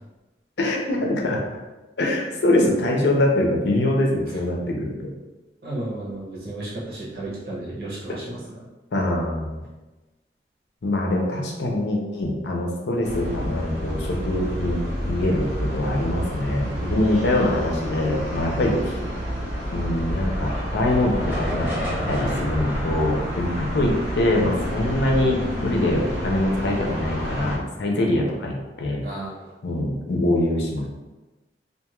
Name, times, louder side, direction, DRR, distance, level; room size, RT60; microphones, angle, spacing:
voice 1, 0.6-1.4 2.0-5.1 8.9-9.6 10.8-18.9 19.7-21.7 22.1-29.0 29.6-30.9, left 1 dB, 80° left, 0 dB, 0.6 m, -23 dB
voice 2, 5.6-8.6 29.0-29.5, right 1 dB, 60° right, -6 dB, 0.8 m, -33 dB
sound 1, 13.0-27.6, equal, 90° right, 1.1 m, -29 dB
sound 2, 19.4-27.8, equal, 10° right, 0.6 m, -35 dB
2.5 x 2.3 x 3.0 m, 1.1 s
head